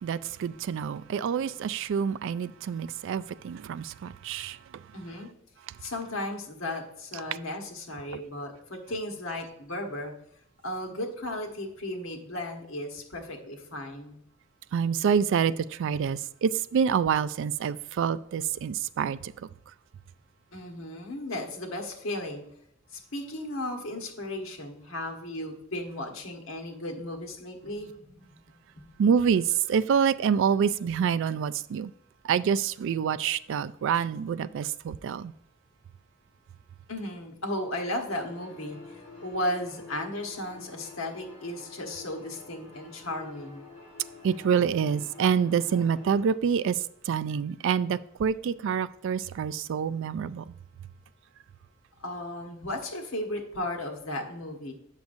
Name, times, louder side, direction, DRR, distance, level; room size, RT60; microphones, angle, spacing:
voice 1, 0.0-4.8 14.7-19.3 29.0-31.9 32.2-35.3 44.2-50.5, right 7 dB, 65° right, 0.3 m, -27 dB
voice 2, 4.9-5.3 5.8-10.1 10.6-14.2 20.5-22.4 22.9-28.3 28.8-28.9 36.9-43.6 52.0-54.7, left 1 dB, 75° left, 1.3 m, -35 dB
sound 1, 38.0-46.3, left 4 dB, 35° left, 2.8 m, -48 dB
8.2 x 6.4 x 2.6 m
head